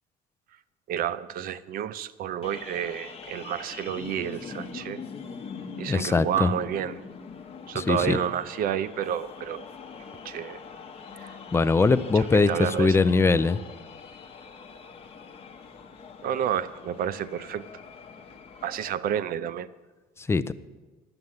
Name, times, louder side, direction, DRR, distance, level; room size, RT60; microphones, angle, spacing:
voice 1, 0.9-5.0 5.8-7.0 7.7-9.7 10.2-10.6 11.1-11.3 12.1-13.0 16.2-17.7 18.6-19.7, right 9 dB, 55° right, 15 dB, 0.6 m, -30 dB
sound 1, 2.4-18.9, left 5 dB, 35° left, 0.9 m, -43 dB
voice 2, 5.9-6.5 7.7-8.2 11.5-12.5 12.8-13.6 20.3-20.5, left 4 dB, 15° left, 14 dB, 0.4 m, -21 dB
11.0 x 7.9 x 7.2 m, 1.2 s
cardioid pair, 120°, 18 cm